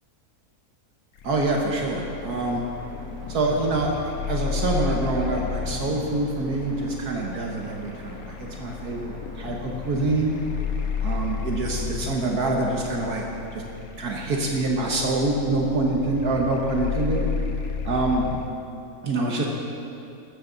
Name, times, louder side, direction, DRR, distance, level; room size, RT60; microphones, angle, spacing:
sound 1, 1.2-18.5, left 7 dB, 65° left, 1.2 m, -33 dB
voice 1, 1.2-2.6 3.3-10.4 11.0-13.3 13.5-13.6 14.0-17.3 17.9-18.3 19.0-19.5, right 2 dB, 70° right, -1 dB, 1.8 m, -25 dB
sound 2, 2.2-13.3, left 1 dB, 45° left, 3.8 m, -46 dB
15.0 x 13.5 x 4.0 m, 2.8 s
omnidirectional pair, 1.7 m